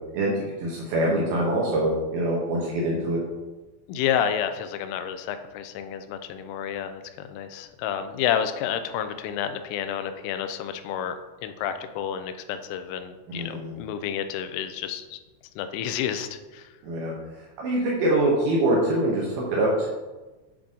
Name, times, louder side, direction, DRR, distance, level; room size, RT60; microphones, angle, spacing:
voice 1, 0.1-3.2 13.3-13.7 16.8-17.1 17.6-19.9, right 1 dB, 75° right, -4 dB, 2.4 m, -24 dB
voice 2, 3.9-15.2 15.6-16.7, left 9 dB, 90° left, 9 dB, 3.0 m, -30 dB
8.4 x 3.8 x 3.6 m, 1.2 s
omnidirectional pair, 5.5 m